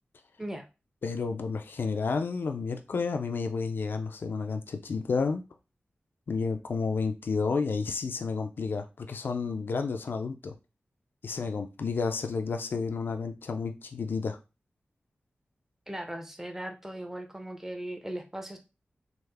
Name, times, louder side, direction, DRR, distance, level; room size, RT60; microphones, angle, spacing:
voice 1, 1.0-5.4 6.3-10.5 11.2-14.4, left 4 dB, 70° left, 7 dB, 0.4 m, -31 dB
voice 2, 15.9-18.6, right 1 dB, 10° right, 5 dB, 0.6 m, -38 dB
3.4 x 2.0 x 3.3 m, 0.28 s
cardioid pair, 50°, 4 cm